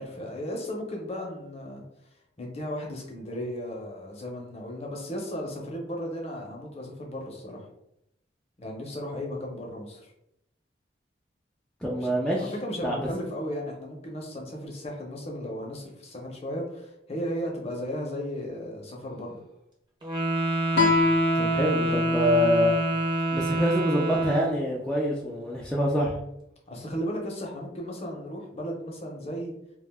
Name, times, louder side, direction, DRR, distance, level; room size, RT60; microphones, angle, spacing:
voice 1, 0.0-1.8 2.4-7.6 8.6-10.1 11.9-12.1 12.4-19.4 26.7-29.5, equal, 35° left, 0 dB, 0.6 m, -35 dB
voice 2, 11.8-12.5 12.8-13.1 21.4-22.7 23.3-26.2, equal, 5° left, -5 dB, 0.3 m, -25 dB
Wind instrument woodwind instrument, 20.0-24.6, right 2 dB, 25° right, 0.7 m, -27 dB
Guitar, 20.7-24.0, left 2 dB, 75° left, 0.6 m, -28 dB
2.5 x 2.2 x 3.4 m, 0.80 s
head